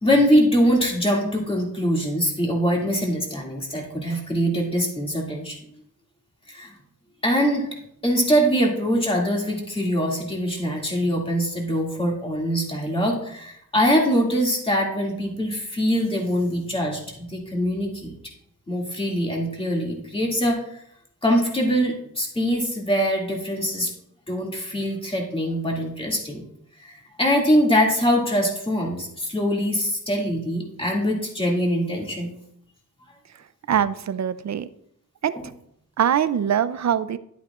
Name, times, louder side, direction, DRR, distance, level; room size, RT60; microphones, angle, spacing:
voice 1, 0.0-5.6 6.5-6.7 7.2-7.7 8.0-18.2 18.7-20.8 21.2-23.9 24.3-26.4 26.8-32.3 35.3-35.4, equal, 15° left, -2 dB, 2.3 m, -23 dB
voice 2, 33.7-34.7 35.2-35.3 36.0-37.2, right 9 dB, 55° right, 14 dB, 0.5 m, -22 dB
11.5 x 9.4 x 2.4 m, 0.71 s
wide cardioid pair, 145°, 33 cm